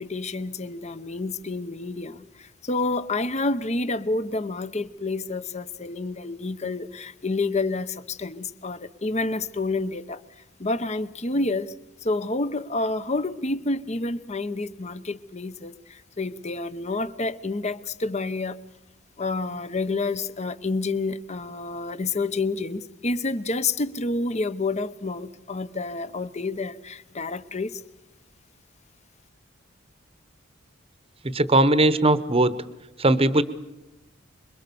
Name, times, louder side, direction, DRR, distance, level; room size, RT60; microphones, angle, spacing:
voice 1, 0.0-10.2 10.6-11.7 12.0-18.6 19.2-27.8, left 3 dB, 35° left, 13 dB, 0.9 m, -29 dB
voice 2, 31.2-32.6 33.0-33.4, right 2 dB, 30° right, 14 dB, 1.0 m, -19 dB
27.0 x 22.5 x 7.0 m, 0.98 s
head